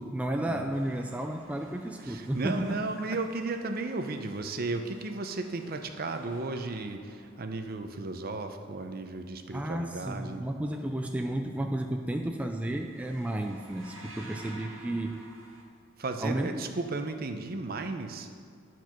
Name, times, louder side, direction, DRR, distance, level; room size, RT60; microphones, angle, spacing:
voice 1, 0.0-2.8 9.5-15.3 16.2-16.6, right 1 dB, 5° right, 3 dB, 0.3 m, -32 dB
sound 1, 0.7-7.8 12.1-12.3 12.6-15.6, right 1 dB, 80° right, 1.3 m, -53 dB
voice 2, 2.0-10.4 16.0-18.3, right 3 dB, 50° right, 7 dB, 0.6 m, -34 dB
10.5 x 4.6 x 5.9 m, 2.3 s
head